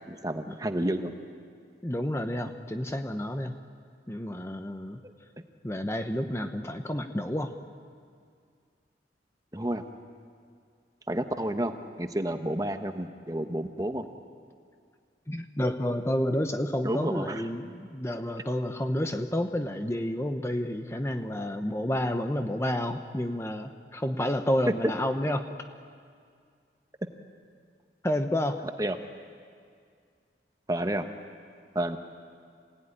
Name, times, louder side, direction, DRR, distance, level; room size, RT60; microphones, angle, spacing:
voice 1, 0.1-1.1 9.5-9.8 11.1-11.7 12.0-14.0 16.8-17.4 28.8-29.0 30.7-31.0 31.7-32.0, right 1 dB, 20° right, 7 dB, 1.1 m, -30 dB
voice 2, 1.8-3.5 4.1-5.0 5.6-7.5 15.3-25.5 28.0-28.6, left 1 dB, 15° left, 6 dB, 0.9 m, -30 dB
26.5 x 17.5 x 10.0 m, 2.2 s
head